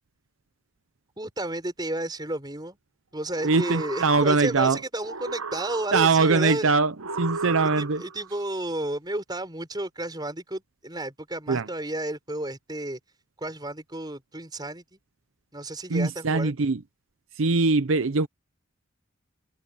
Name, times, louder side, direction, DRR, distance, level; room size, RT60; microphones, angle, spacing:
voice 1, 1.2-2.8 3.1-6.7 7.4-13.0 13.4-15.0 15.5-16.5, right 1 dB, 20° right, 5.7 m, -32 dB
sound 1, 3.2-4.7 5.0-6.3 7.0-8.3, right 4 dB, 90° right, 1.2 m, -35 dB
voice 2, 3.4-4.8 5.9-6.9 7.2-8.0 11.5-11.7 15.9-16.8 17.4-18.3, right 4 dB, 70° right, 0.7 m, -22 dB
head